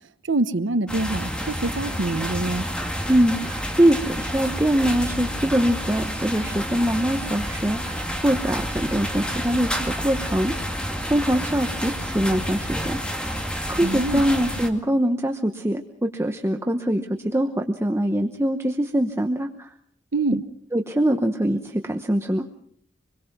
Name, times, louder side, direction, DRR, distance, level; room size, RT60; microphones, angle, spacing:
voice 1, 0.3-2.7 13.8-14.2 20.1-20.4, right 2 dB, 85° right, 1.0 m, -25 dB
sound 1, 0.9-14.7, equal, 5° left, 2.1 m, -29 dB
voice 2, 3.1-13.4 13.7-19.7 20.7-22.5, right 1 dB, 15° right, 1.0 m, -23 dB
26.5 x 21.5 x 6.0 m
head